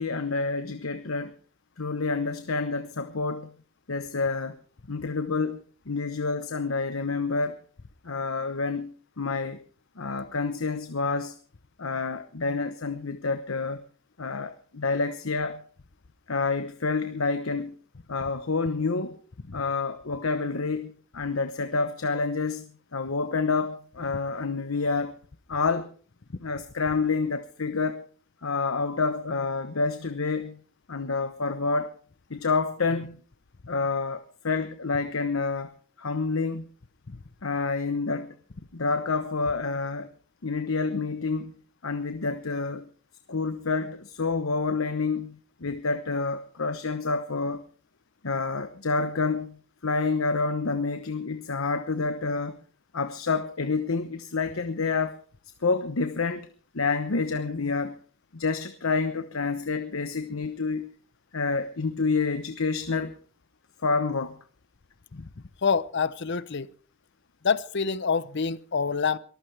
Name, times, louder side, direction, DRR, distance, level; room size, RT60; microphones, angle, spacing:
voice 1, 0.0-1.3 1.8-3.5 3.9-4.6 4.9-5.6 5.9-7.6 8.0-9.6 10.0-11.3 11.8-13.8 14.2-15.6 16.3-17.8 18.1-19.2 19.5-25.1 25.5-25.9 26.4-28.0 28.4-30.6 30.9-31.9 32.3-33.2 33.7-35.7 36.0-36.6 37.4-38.4 38.7-40.1 40.4-41.5 41.8-42.9 43.3-47.6 48.2-52.6 52.9-55.2 55.6-56.5 56.7-58.0 58.3-60.9 61.3-63.2 63.8-64.4, left 4 dB, 85° left, 1.1 m, -28 dB
voice 2, 65.6-66.7 67.4-69.2, left 5 dB, 60° left, 0.8 m, -26 dB
23.0 x 14.5 x 3.4 m
head